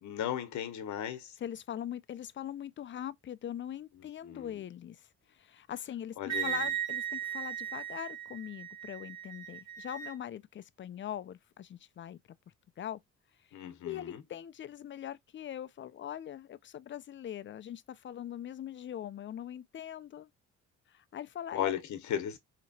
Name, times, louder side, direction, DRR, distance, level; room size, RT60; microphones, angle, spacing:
voice 1, 0.0-1.4 4.2-4.5 6.2-6.7 13.5-14.2 21.5-22.4, left 10 dB, 70° left, 0.9 m, -36 dB
voice 2, 1.4-12.2 12.8-13.0 13.8-20.3 20.9-21.7, left 10 dB, 40° left, 0.4 m, -41 dB
Wind instrument woodwind instrument, 6.3-10.1, right 10 dB, 60° right, 1.2 m, -37 dB
4.2 x 2.9 x 2.7 m
cardioid pair, 90°, 30 cm